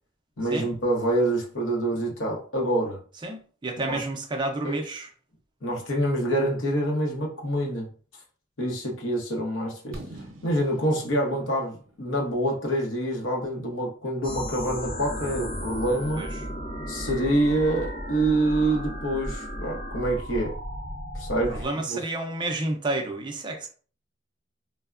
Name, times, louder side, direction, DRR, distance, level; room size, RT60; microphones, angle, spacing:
voice 1, 0.4-3.0 3.9-4.0 4.6-4.8 5.6-7.9 8.6-10.0 10.4-16.3 16.9-20.6 21.1-22.0, right 1 dB, 75° left, 0.8 m, -26 dB
voice 2, 3.2-5.1 16.2-16.3 21.5-23.7, right 2 dB, 25° right, 0.4 m, -30 dB
Fireworks, 9.9-13.8, right 1 dB, 85° right, 0.6 m, -46 dB
sound 1, 14.2-21.7, equal, 45° left, 0.7 m, -34 dB
3.2 x 2.1 x 2.4 m
head